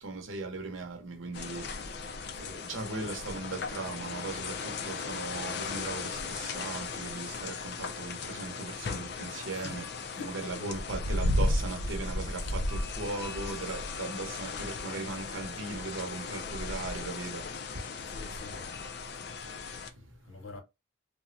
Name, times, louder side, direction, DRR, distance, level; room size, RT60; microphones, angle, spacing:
voice 1, 0.0-9.9 10.2-18.3 18.9-20.4, right 3 dB, 75° right, 0.8 m, -39 dB
sound 1, 1.3-19.9, left 3 dB, 50° left, 0.4 m, -35 dB
voice 2, 10.1-10.8 18.1-18.7 20.3-20.6, left 3 dB, 80° left, 0.8 m, -45 dB
3.4 x 2.1 x 2.5 m
head